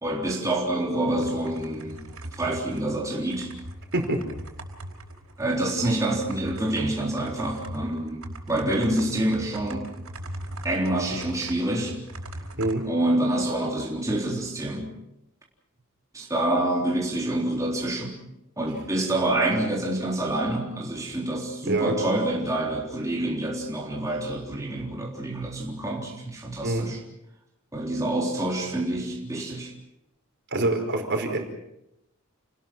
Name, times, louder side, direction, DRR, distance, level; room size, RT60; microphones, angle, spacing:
voice 1, 0.0-2.0 2.4-3.5 5.4-9.9 10.6-12.0 12.8-14.9 16.1-18.2 18.6-27.0 27.7-29.7, right 1 dB, 15° right, -2 dB, 3.8 m, -27 dB
sound 1, 1.2-12.7, right 1 dB, 85° right, 4.8 m, -40 dB
voice 2, 30.5-31.4, right 2 dB, 55° right, 4 dB, 5.1 m, -25 dB
30.0 x 20.0 x 6.1 m, 0.85 s
head